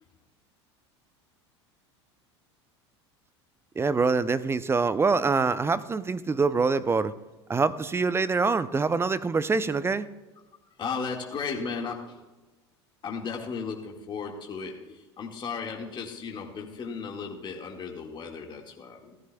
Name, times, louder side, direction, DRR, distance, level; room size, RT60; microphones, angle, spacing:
voice 1, 3.8-7.1 7.5-10.1, right 4 dB, 15° right, 15 dB, 0.5 m, -25 dB
voice 2, 10.6-12.2 13.0-19.2, left 5 dB, 30° left, 0 dB, 1.8 m, -35 dB
16.0 x 14.0 x 2.3 m, 1.2 s
hypercardioid pair, 80°, 15 cm